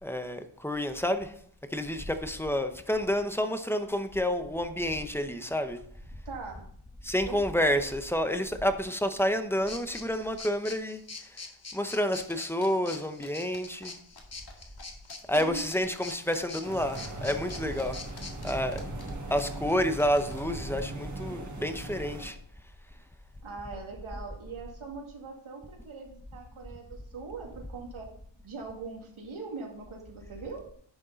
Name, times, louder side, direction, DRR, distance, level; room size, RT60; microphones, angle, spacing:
voice 1, 0.0-1.3 1.7-5.8 7.0-11.0 11.7-13.9 15.3-18.0 18.4-18.8 19.3-22.4, equal, 5° left, 0.6 m, -29 dB
voice 2, 6.2-6.7 7.2-7.4 15.3-15.7 23.4-28.1 28.4-30.7, right 4 dB, 85° right, 2.3 m, -41 dB
sound 1, 9.7-18.5, left 3 dB, 30° left, 1.1 m, -44 dB
sound 2, 12.3-14.2 14.5-14.6 14.8-20.4, left 3 dB, 50° left, 1.9 m, -49 dB
sound 3, 16.6-22.3, right 2 dB, 40° right, 1.5 m, -39 dB
10.5 x 6.4 x 3.9 m
wide cardioid pair, 160°, 48 cm